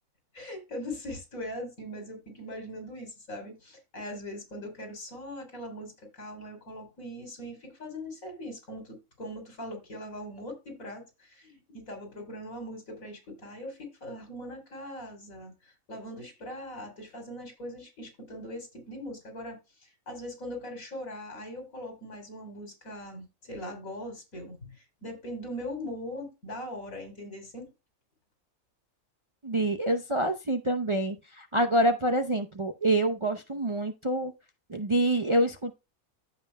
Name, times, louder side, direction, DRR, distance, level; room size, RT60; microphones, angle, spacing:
voice 1, 0.3-27.7, left 1 dB, 80° left, 3.7 m, -41 dB
voice 2, 29.4-34.3 34.7-35.7, right 1 dB, 30° right, 0.6 m, -26 dB
14.5 x 5.5 x 2.2 m
omnidirectional pair, 1.4 m